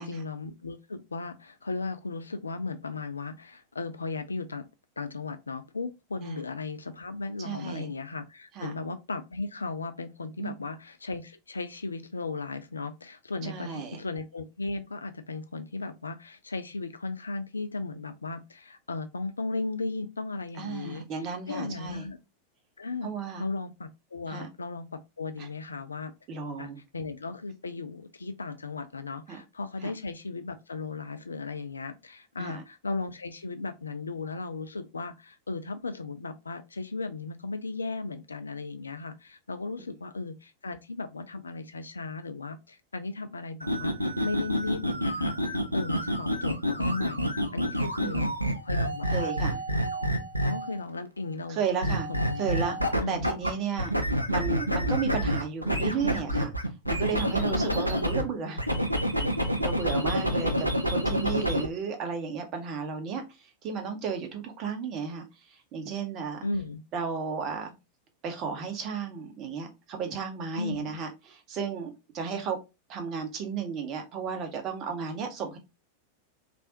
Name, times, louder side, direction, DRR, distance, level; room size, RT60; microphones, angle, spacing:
voice 1, 0.0-4.7 5.0-21.1 21.5-22.2 22.8-23.1 23.4-26.1 26.6-49.3 49.8-50.1 50.4-53.3 57.4-58.0 59.9-60.7 66.4-66.8 70.6-71.0, left 3 dB, 75° left, 0.4 m, -36 dB
voice 2, 7.4-7.9 8.5-8.7 10.4-10.5 13.4-14.0 20.6-22.1 23.0-23.5 24.3-24.5 25.4-25.5 26.3-26.8 29.3-29.4 29.8-29.9 32.4-32.6 48.0-48.3 49.1-49.6 51.5-52.1 52.4-52.8 53.1-53.9 54.3-56.5 56.9-58.6 59.4-66.4 66.9-67.7 68.2-72.6 72.9-75.6, right 6 dB, 35° right, 0.9 m, -34 dB
sound 1, 43.6-50.8 51.8-53.5 53.8-58.2 58.6-61.7, equal, 90° right, 0.5 m, -28 dB
3.3 x 2.5 x 2.8 m
figure-of-eight pair, 90°, 0 cm